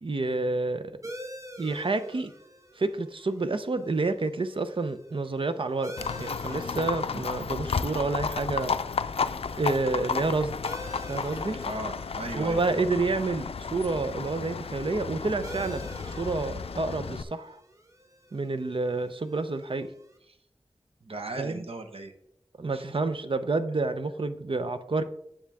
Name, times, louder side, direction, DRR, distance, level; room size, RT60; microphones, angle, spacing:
voice 1, 0.0-0.9 1.6-2.3 2.8-5.9 6.2-8.7 9.5-10.5 11.1-11.6 12.3-17.6 18.3-19.9 21.4-21.6 22.6-25.0, right 3 dB, 60° right, 10 dB, 0.7 m, -29 dB
sound 1, 1.0-20.2, equal, 35° right, 1.2 m, -48 dB
Livestock farm animals working animals, 6.0-17.2, left 5 dB, 85° left, 0.4 m, -33 dB
voice 2, 11.6-12.6 21.0-22.1 22.7-23.1, right 2 dB, 80° right, 6 dB, 1.1 m, -37 dB
10.0 x 7.1 x 3.5 m, 0.74 s
wide cardioid pair, 70°, 10 cm